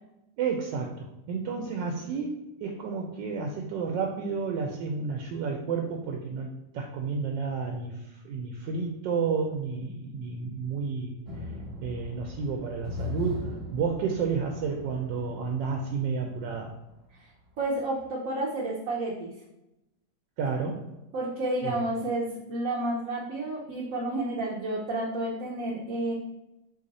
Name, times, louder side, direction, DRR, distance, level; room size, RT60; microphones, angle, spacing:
voice 1, 0.4-6.5 6.7-11.2 11.8-16.7 20.4-20.8 21.6-21.8, right 5 dB, 90° right, 2 dB, 1.3 m, -31 dB
sound 1, 11.2-16.6 17.6-17.7 18.0-18.1, left 3 dB, 40° right, 1.2 m, -39 dB
voice 2, 17.6-19.3 21.1-26.1, right 1 dB, 60° right, -3 dB, 0.9 m, -30 dB
4.0 x 3.0 x 3.9 m, 0.92 s
omnidirectional pair, 1.9 m